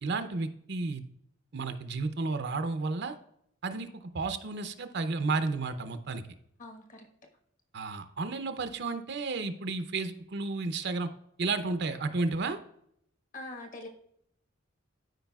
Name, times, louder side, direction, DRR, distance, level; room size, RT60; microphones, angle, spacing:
voice 1, 0.0-1.0 1.5-3.2 3.6-6.2 7.7-11.1 11.4-12.6, right 3 dB, 55° right, 0.6 m, -32 dB
voice 2, 6.6-7.1 13.3-13.9, left 2 dB, 40° left, 1.3 m, -43 dB
13.0 x 4.8 x 2.4 m
head